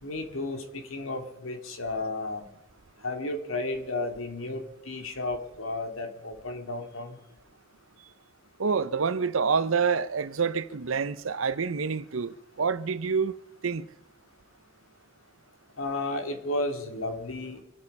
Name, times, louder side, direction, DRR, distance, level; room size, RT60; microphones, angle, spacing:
voice 1, 0.0-2.5 3.0-7.2 15.8-17.6, left 2 dB, 80° left, 2.4 m, -33 dB
voice 2, 8.6-13.3 13.6-13.9, right 5 dB, 75° right, 0.7 m, -27 dB
25.5 x 8.6 x 5.5 m
head